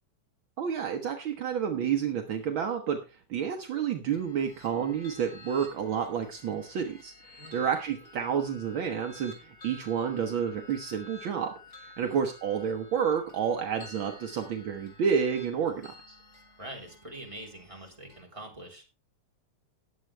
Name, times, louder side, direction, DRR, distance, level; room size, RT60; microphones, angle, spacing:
voice 1, 0.6-3.0 3.3-11.5 12.0-16.1, right 7 dB, 65° right, 4 dB, 1.2 m, -30 dB
sound 1, 4.1-18.2, left 2 dB, 20° left, 3.5 m, -52 dB
voice 2, 7.4-7.7 12.0-12.2 16.6-18.8, right 1 dB, 10° right, -1 dB, 3.2 m, -44 dB
19.5 x 7.6 x 3.3 m, 0.29 s
omnidirectional pair, 3.6 m